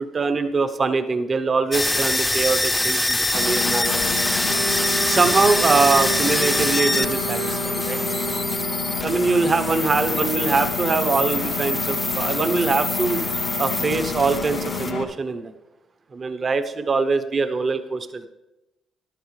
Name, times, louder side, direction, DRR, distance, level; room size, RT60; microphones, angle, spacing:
voice 1, 0.0-4.4 5.1-8.0 9.0-13.2 13.6-15.5 16.1-18.3, right 4 dB, 40° right, 9 dB, 0.8 m, -23 dB
sound 1, 1.7-14.9, left 1 dB, 10° left, 0.6 m, -25 dB
Engine, 3.3-15.0, left 7 dB, 80° left, 2.0 m, -30 dB
Wind instrument woodwind instrument, 4.5-9.1, right 6 dB, 70° right, 1.0 m, -32 dB
14.0 x 11.5 x 3.3 m, 0.97 s
cardioid pair, 90°, 0 cm